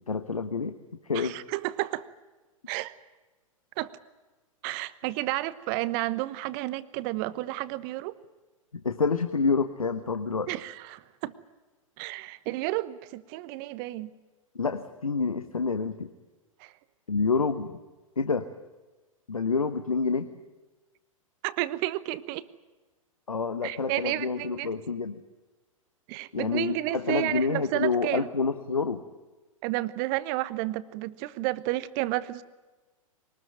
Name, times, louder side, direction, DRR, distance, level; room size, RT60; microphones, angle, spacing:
voice 1, 0.1-0.8 1.0-1.3 8.7-10.5 14.5-16.1 17.1-17.7 18.2-18.4 19.3-20.3 23.3-25.2 26.3-29.0, left 4 dB, 80° left, 9 dB, 1.2 m, -28 dB
voice 2, 1.1-2.1 2.7-2.9 3.8-3.9 4.6-8.1 10.5-11.3 12.0-14.1 16.6-16.7 21.4-22.4 23.6-24.7 26.1-28.3 29.6-32.4, right 17 dB, 40° right, 17 dB, 1.1 m, -31 dB
23.5 x 19.5 x 9.2 m, 1.2 s
figure-of-eight pair, 105°, 18 cm